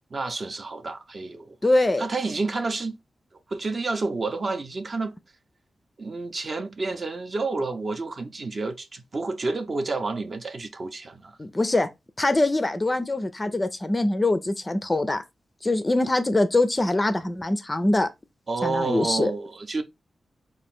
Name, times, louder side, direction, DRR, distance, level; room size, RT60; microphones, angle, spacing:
voice 1, 0.1-1.6 2.0-3.0 3.5-5.1 6.0-11.4 18.5-19.8, right 3 dB, 35° right, 0.6 m, -29 dB
voice 2, 1.6-2.0 11.4-11.9 12.2-15.2 15.6-18.1 18.6-19.3, left 2 dB, 20° left, 0.4 m, -23 dB
5.0 x 2.5 x 3.5 m
wide cardioid pair, 160°, 0 cm